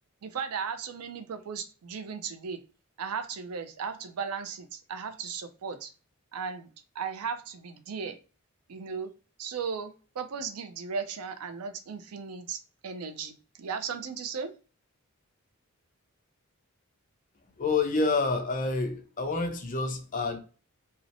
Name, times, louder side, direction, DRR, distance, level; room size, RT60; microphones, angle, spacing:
voice 1, 0.2-2.6 3.0-5.9 6.3-6.7 7.0-8.2 8.7-9.1 9.4-12.6 12.8-14.5, right 6 dB, 90° right, 0.5 m, -36 dB
voice 2, 17.6-20.4, left 3 dB, 35° left, 0.5 m, -28 dB
2.7 x 2.0 x 2.6 m
head